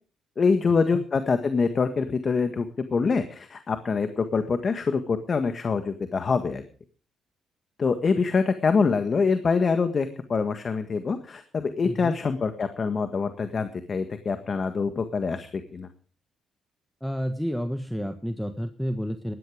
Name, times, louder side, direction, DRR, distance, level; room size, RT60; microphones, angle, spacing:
voice 1, 0.4-6.6 7.8-15.9, left 5 dB, 40° left, 8 dB, 1.7 m, -25 dB
voice 2, 17.0-19.3, equal, ahead, 8 dB, 1.4 m, -30 dB
17.0 x 12.0 x 5.1 m, 0.41 s
cardioid pair, 90°, 0 cm